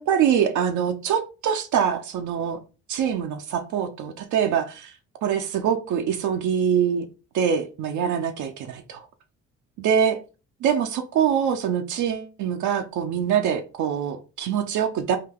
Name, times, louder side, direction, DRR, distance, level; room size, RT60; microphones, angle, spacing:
voice 1, 0.0-2.6 2.9-4.9 5.2-7.1 7.3-9.1 9.8-10.1 10.6-15.2, right 8 dB, 75° right, 0.6 m, -24 dB
3.6 x 2.2 x 3.6 m
cardioid pair, 90°, 30 cm